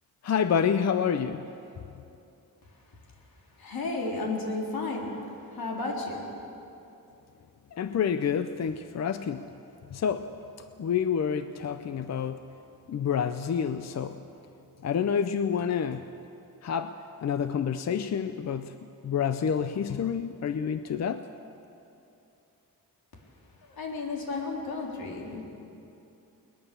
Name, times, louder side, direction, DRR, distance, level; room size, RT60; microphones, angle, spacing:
voice 1, 0.2-1.4 7.7-9.5 9.9-10.3 10.8-12.4 12.9-14.2 14.8-16.0 16.6-17.0 17.2-18.7 19.0-21.2, left 7 dB, 50° left, 10 dB, 0.6 m, -28 dB
voice 2, 3.6-5.1 5.5-6.2 23.8-25.4, left 3 dB, 85° left, -1 dB, 4.0 m, -32 dB
21.0 x 20.5 x 6.9 m, 2.8 s
wide cardioid pair, 165°, 35 cm